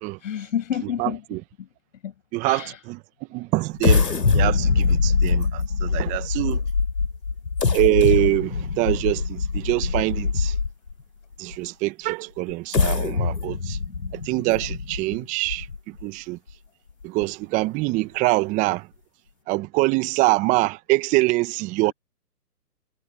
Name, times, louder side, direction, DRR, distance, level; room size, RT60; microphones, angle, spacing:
voice 1, 0.2-1.2 1.6-1.7 2.0-2.1 2.4-2.8, left 9 dB, 50° left, 6.1 m, -29 dB
voice 2, 1.0-1.4 2.3-3.0 3.3-6.6 7.7-10.6 11.4-13.8 14.1-16.4 17.0-18.9 19.5-21.9, right 21 dB, 15° right, 1.1 m, -24 dB
sound 1, 3.8-10.9 11.5-11.6 12.5-16.0 16.5-16.6 17.0-17.2, left 4 dB, 80° left, 4.3 m, -23 dB
figure-of-eight pair, 135°, 48 cm